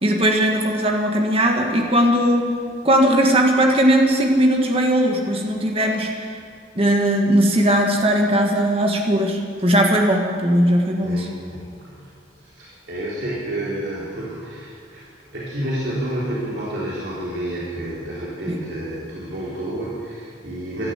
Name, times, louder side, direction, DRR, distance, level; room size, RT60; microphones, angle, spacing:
voice 1, 0.0-2.5 2.8-6.3 6.8-11.3 18.5-18.6, right 1 dB, 30° right, 1 dB, 1.6 m, -18 dB
voice 2, 11.0-12.1 12.4-15.1 15.3-20.9, right 1 dB, 75° right, -7 dB, 3.5 m, -30 dB
15.0 x 11.5 x 8.1 m, 2.3 s
head